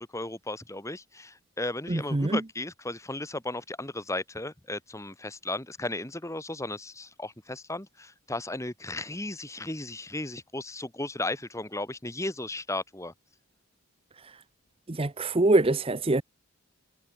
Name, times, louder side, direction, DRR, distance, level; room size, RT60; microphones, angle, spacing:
voice 1, 0.1-13.1, left 2 dB, 15° left, 1.9 m, -35 dB
voice 2, 1.9-2.4 14.9-16.2, right 2 dB, 25° right, 0.7 m, -24 dB
head